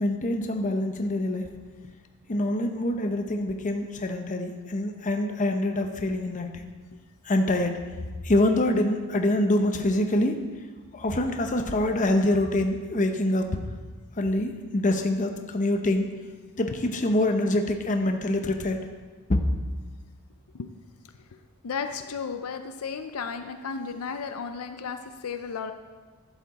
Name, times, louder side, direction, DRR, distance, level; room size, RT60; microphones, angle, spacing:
voice 1, 0.0-1.5 2.3-6.7 7.2-7.8 8.2-10.4 10.9-13.6 14.2-16.1 16.6-18.8 19.3-19.4, left 1 dB, 35° left, 5 dB, 0.8 m, -25 dB
voice 2, 21.3-25.7, left 5 dB, 75° left, 8 dB, 0.5 m, -34 dB
11.5 x 7.2 x 4.1 m, 1.4 s
head